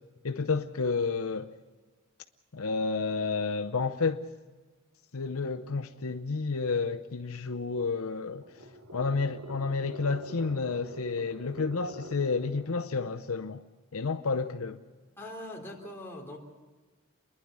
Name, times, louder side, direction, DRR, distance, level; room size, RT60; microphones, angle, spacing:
voice 1, 0.2-1.5 2.5-4.3 5.1-8.4 8.9-13.6 13.9-14.8, left 4 dB, 65° left, 0.7 m, -30 dB
sound 1, 8.0-12.8, right 1 dB, 70° right, 3.2 m, -46 dB
voice 2, 15.2-16.4, left 1 dB, 10° left, 3.6 m, -41 dB
29.0 x 11.5 x 9.6 m
head